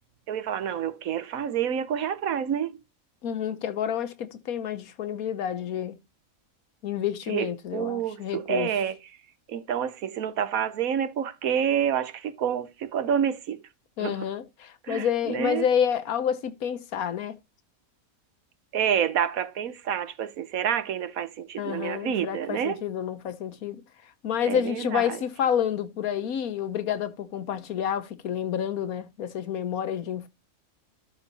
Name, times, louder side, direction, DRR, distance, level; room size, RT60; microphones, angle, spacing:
voice 1, 0.3-2.8 7.3-9.0 9.5-13.6 14.0-14.2 14.9-15.7 18.7-22.8 24.5-25.2, right 8 dB, 80° right, 1.3 m, -28 dB
voice 2, 3.2-6.0 6.8-8.7 14.0-17.4 21.6-23.8 24.2-30.3, left 9 dB, 85° left, 1.4 m, -29 dB
12.5 x 4.3 x 4.0 m
omnidirectional pair, 1.5 m